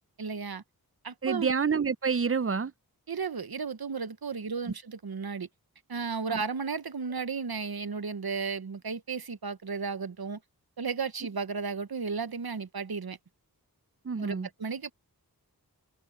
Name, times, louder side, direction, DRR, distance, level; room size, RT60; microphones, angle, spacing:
voice 1, 0.2-0.6 1.0-1.5 3.1-5.5 5.9-10.4 10.8-13.2 14.2-14.9, right 5 dB, 70° right, 1.0 m, -34 dB
voice 2, 1.2-2.7 6.3-6.4 14.0-14.5, right 5 dB, 35° right, 0.6 m, -28 dB
wide cardioid pair, 45°, 38 cm